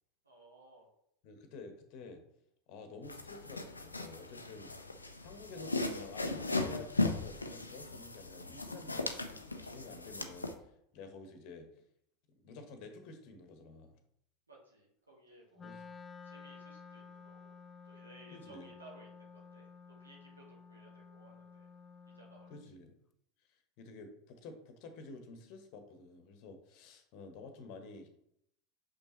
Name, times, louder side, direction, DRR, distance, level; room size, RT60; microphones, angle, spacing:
voice 1, 0.2-0.9 14.5-15.7 16.2-17.5 17.8-19.7 20.0-21.7 22.1-22.5, right 2 dB, 80° right, -2 dB, 1.4 m, -59 dB
voice 2, 1.2-2.2 2.7-4.7 5.2-11.7 12.3-13.9 15.6-15.8 18.3-18.7 22.5-22.9 23.5-28.1, left 3 dB, 50° left, 7 dB, 1.1 m, -50 dB
sound 1, 3.0-10.5, left 2 dB, 85° left, 0.5 m, -37 dB
Wind instrument woodwind instrument, 15.6-22.7, left 5 dB, 20° left, 0.3 m, -53 dB
6.3 x 5.5 x 3.1 m, 0.73 s
figure-of-eight pair, 80°, 0 cm